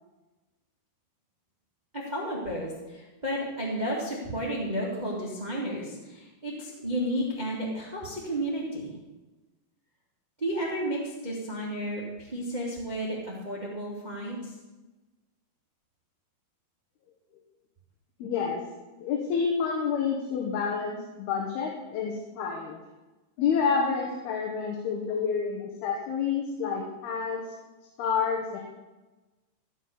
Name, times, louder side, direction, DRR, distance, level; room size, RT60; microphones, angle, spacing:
voice 1, 1.9-9.0 10.4-14.5, equal, 20° right, -4 dB, 1.0 m, -32 dB
voice 2, 18.2-18.6 19.0-22.8 23.4-27.4 28.0-28.6, left 6 dB, 75° left, 0 dB, 3.1 m, -29 dB
14.0 x 5.6 x 7.1 m, 1.1 s
omnidirectional pair, 4.7 m